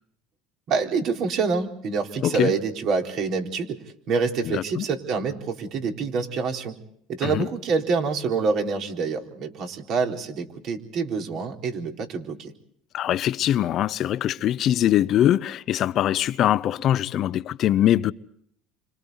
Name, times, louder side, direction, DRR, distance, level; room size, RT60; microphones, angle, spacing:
voice 1, 0.7-3.8 4.1-6.7 7.1-12.5, right 5 dB, 55° right, 4.1 m, -26 dB
voice 2, 2.2-2.5 4.4-4.8 7.2-7.5 12.9-18.1, left 12 dB, 50° left, 0.8 m, -22 dB
30.0 x 26.0 x 4.0 m
supercardioid pair, 105°, 0 cm